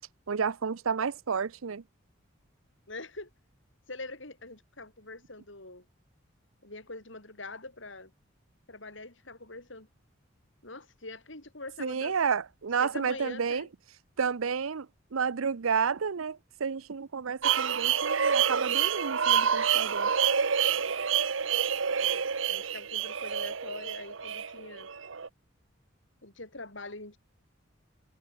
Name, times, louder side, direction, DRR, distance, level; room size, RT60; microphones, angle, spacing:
voice 1, 0.3-1.8 11.8-13.7 14.2-20.1, right 6 dB, 90° right, 0.6 m, -31 dB
voice 2, 2.9-3.3 3.9-5.9 6.6-8.1 8.7-9.9 10.6-12.2 12.8-13.7 22.0-24.9 26.2-27.2, left 2 dB, 65° left, 5.6 m, -44 dB
sound 1, 17.4-25.3, right 7 dB, 70° right, 1.0 m, -28 dB
open air
head